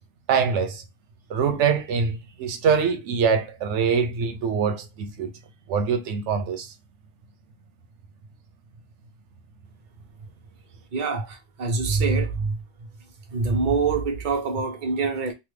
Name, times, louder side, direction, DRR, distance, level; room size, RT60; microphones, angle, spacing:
voice 1, 0.3-0.8 1.3-5.3 5.7-6.7, right 6 dB, 85° right, 1.0 m, -24 dB
voice 2, 10.9-12.6 13.3-15.3, right 4 dB, 45° right, 0.9 m, -25 dB
3.2 x 2.2 x 3.2 m
omnidirectional pair, 1.2 m